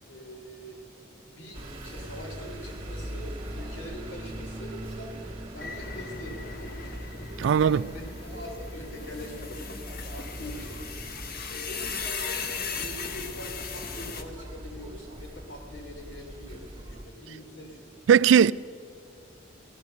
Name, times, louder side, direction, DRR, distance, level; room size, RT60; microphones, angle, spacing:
voice 1, 0.0-0.8 1.3-7.0 7.5-9.5 10.1-10.8 11.5-17.9, equal, 75° left, 3.3 m, -43 dB
sound 1, 1.5-17.1, equal, 30° right, 2.0 m, -41 dB
sound 2, 5.6-14.2, left 6 dB, 50° left, 1.0 m, -38 dB
voice 2, 7.4-7.8 18.1-18.5, right 8 dB, 75° right, 0.3 m, -18 dB
15.5 x 13.0 x 6.6 m
head